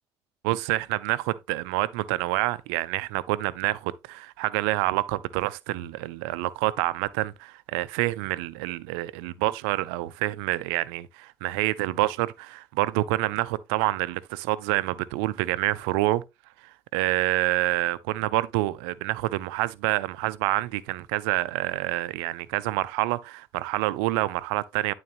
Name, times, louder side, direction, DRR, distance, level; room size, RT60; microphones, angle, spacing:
voice 1, 0.4-16.2 16.9-24.9, right 18 dB, 85° right, 0.4 m, -27 dB
10.5 x 3.9 x 2.9 m
hypercardioid pair, 50°, 13 cm